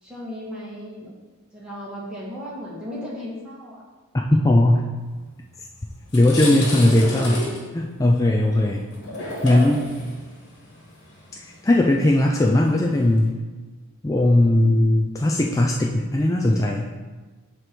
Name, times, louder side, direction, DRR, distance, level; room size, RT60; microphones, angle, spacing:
voice 1, 0.0-1.1 1.5-3.8 8.6-8.8 14.4-14.7, left 1 dB, 5° right, -7 dB, 1.6 m, -36 dB
voice 2, 4.3-4.9 6.1-7.4 7.7-8.8 9.4-9.8 11.6-13.4 14.0-16.9, left 1 dB, 15° left, -1 dB, 0.3 m, -18 dB
sound 1, 5.5-5.6 6.0-13.3, left 2 dB, 55° left, 1.6 m, -33 dB
8.0 x 3.0 x 6.0 m, 1.3 s
head